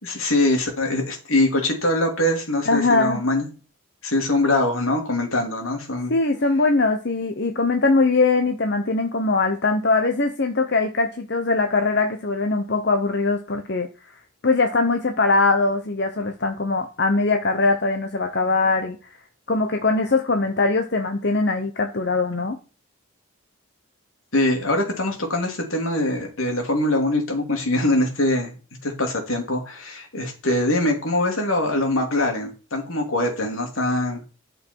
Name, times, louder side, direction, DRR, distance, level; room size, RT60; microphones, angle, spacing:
voice 1, 0.0-3.5 4.0-6.1 24.3-28.5 28.8-34.2, left 1 dB, 80° left, 2 dB, 3.0 m, -23 dB
voice 2, 2.7-3.2 6.1-13.9 14.4-19.0 19.5-22.6, left 3 dB, 50° left, 5 dB, 0.9 m, -21 dB
10.5 x 6.7 x 4.6 m, 0.34 s
head